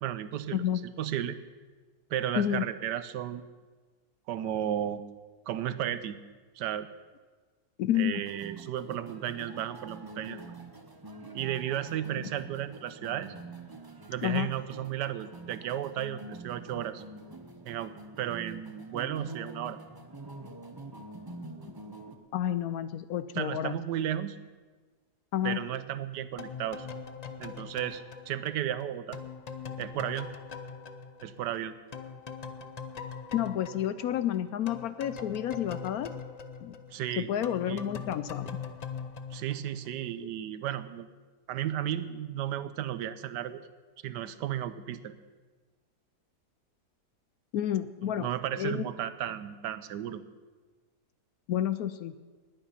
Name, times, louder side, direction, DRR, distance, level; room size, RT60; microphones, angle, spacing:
voice 1, 0.0-0.6 1.0-1.4 2.1-3.6 4.3-5.0 5.5-6.2 6.5-6.9 7.9-10.4 11.3-13.3 14.1-17.0 17.7-19.8 23.3-24.4 25.4-26.9 27.4-29.2 29.8-30.3 31.2-31.7 36.9-37.3 37.7-37.8 39.3-41.1 41.5-43.6 44.0-45.1 48.0-50.2, right 11 dB, 90° right, 13 dB, 1.3 m, -34 dB
voice 2, 7.8-8.2 12.2-12.3 14.2-14.5 21.6-21.7 22.3-23.8 25.3-25.6 33.3-36.1 36.6-36.8 37.2-38.6 47.5-48.3 48.6-48.8 51.5-52.1, left 11 dB, 70° left, 14 dB, 1.0 m, -30 dB
sound 1, 8.1-22.1, right 2 dB, 20° right, 0.6 m, -46 dB
sound 2, 26.4-31.6 31.9-40.1, left 5 dB, 50° left, 0.4 m, -42 dB
19.5 x 8.9 x 5.7 m, 1.4 s
omnidirectional pair, 1.8 m